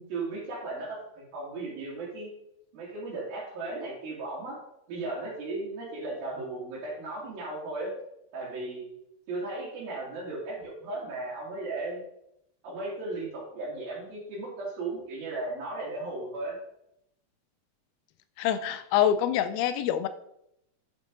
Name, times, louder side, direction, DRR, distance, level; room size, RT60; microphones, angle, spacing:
voice 1, 0.0-2.3 2.7-4.6 4.9-7.9 8.3-8.8 9.3-12.0 12.6-16.6, right 2 dB, 70° right, -8 dB, 4.0 m, -36 dB
voice 2, 18.4-20.1, left 10 dB, 85° left, 12 dB, 2.5 m, -25 dB
10.5 x 6.1 x 3.8 m, 0.79 s
omnidirectional pair, 4.5 m